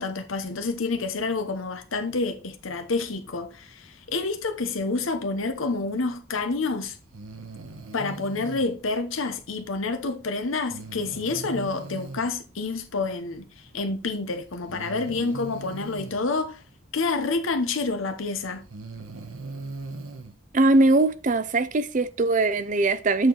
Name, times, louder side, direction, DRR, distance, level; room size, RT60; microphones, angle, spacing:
voice 1, 0.0-7.0 7.9-13.5 13.7-16.6 16.9-18.7, left 3 dB, 80° left, 0.9 m, -28 dB
Breathing, 7.1-8.7 10.7-12.3 13.7-13.8 14.7-16.2 17.8-17.9 18.5-20.3, right 3 dB, 90° right, 1.1 m, -39 dB
voice 2, 20.5-23.3, right 2 dB, 40° right, 0.5 m, -21 dB
8.1 x 4.6 x 3.9 m
head